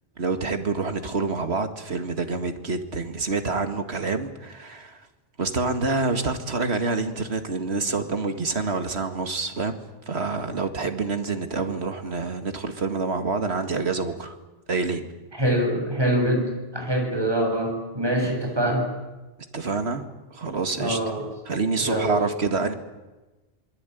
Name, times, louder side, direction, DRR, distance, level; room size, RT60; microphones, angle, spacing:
voice 1, 0.2-5.0 5.4-9.8 10.1-14.4 14.7-15.0 18.2-18.3 19.5-20.1 20.3-21.0 21.5-22.7, right 4 dB, 90° right, 7 dB, 2.3 m, -27 dB
voice 2, 15.3-18.9 20.8-21.3 21.8-22.2, right 1 dB, 25° right, 1 dB, 7.2 m, -24 dB
27.0 x 22.5 x 9.3 m, 1.1 s
omnidirectional pair, 1.1 m